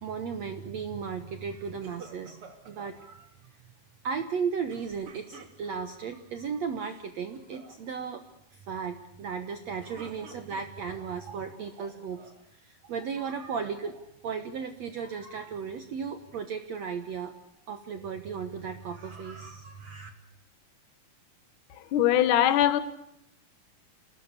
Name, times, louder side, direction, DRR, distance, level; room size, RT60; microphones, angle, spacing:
voice 1, 0.0-3.3 4.0-8.2 8.5-12.3 12.6-17.3 17.7-20.1, right 6 dB, 65° right, 8 dB, 1.9 m, -35 dB
sound 1, 1.8-3.0 4.7-6.0 6.7-7.1 7.3-7.7 9.6-11.1 11.7-12.4, right 4 dB, 40° right, 3.2 m, -50 dB
voice 2, 21.7-22.8, left 12 dB, 60° left, 12 dB, 2.7 m, -22 dB
28.0 x 18.5 x 8.3 m, 0.76 s
omnidirectional pair, 4.3 m